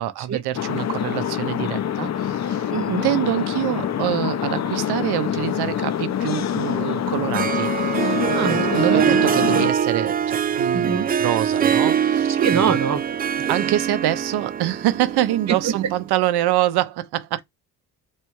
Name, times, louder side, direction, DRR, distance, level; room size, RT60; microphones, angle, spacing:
voice 1, 0.0-2.7 3.0-12.7 13.5-17.4, right 14 dB, 75° right, 0.8 m, -25 dB
sound 1, 0.5-9.7, left 9 dB, 45° left, 0.7 m, -25 dB
voice 2, 2.7-3.1 8.3-9.2 10.7-11.1 12.4-13.2 15.5-15.7, right 6 dB, 45° right, 1.1 m, -24 dB
Harp, 7.1-16.1, right 8 dB, 25° right, 0.4 m, -23 dB
3.3 x 3.1 x 4.3 m
cardioid pair, 95°, 40 cm